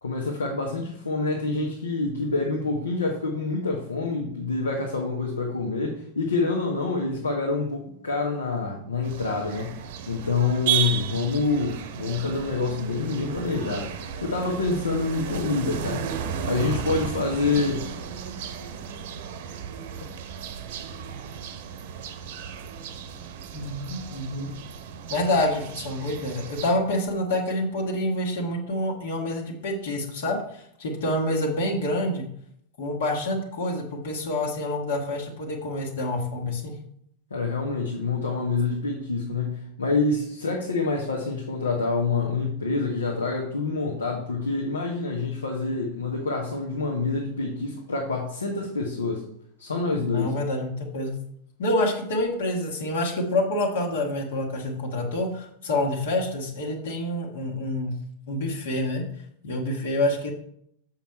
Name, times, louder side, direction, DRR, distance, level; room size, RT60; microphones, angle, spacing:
voice 1, 0.0-9.7 10.1-16.0 16.4-17.9 37.3-49.2 49.6-50.3, left 3 dB, 75° left, -1 dB, 1.3 m, -27 dB
sound 1, 9.0-26.7, right 8 dB, 50° right, 0.8 m, -34 dB
voice 2, 23.5-24.5 25.1-32.3 32.8-36.8 50.0-51.2 51.6-58.0 58.3-59.0 59.4-60.3, left 1 dB, 60° left, -1 dB, 1.7 m, -27 dB
7.1 x 5.8 x 4.6 m, 0.69 s
figure-of-eight pair, 90°, 0 cm